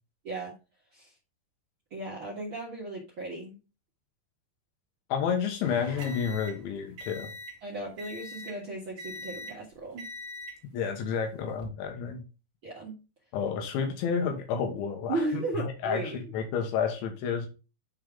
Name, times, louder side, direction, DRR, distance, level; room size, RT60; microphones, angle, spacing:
voice 1, 1.9-3.6 7.6-10.0 12.6-13.0 15.1-16.3, right 2 dB, 80° right, -3 dB, 1.1 m, -35 dB
voice 2, 5.1-7.3 10.7-12.2 13.3-15.2 15.6-16.0 16.3-17.5, left 6 dB, 85° left, 4 dB, 3.5 m, -30 dB
sound 1, 5.6-7.6 8.0-8.6 9.0-9.6 10.0-10.6 11.4-11.7, left 1 dB, 55° right, 1.4 m, -42 dB
11.0 x 3.9 x 3.5 m, 0.31 s
omnidirectional pair, 5.3 m